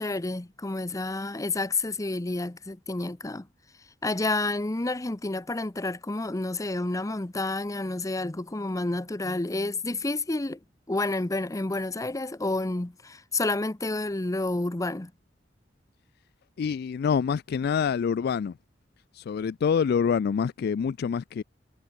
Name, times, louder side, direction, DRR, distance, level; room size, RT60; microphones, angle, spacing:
voice 1, 0.0-3.5 4.0-10.6 10.9-15.1, left 2 dB, 20° left, 0.7 m, -29 dB
voice 2, 16.6-18.6 19.2-21.4, left 6 dB, 55° left, 0.3 m, -26 dB
head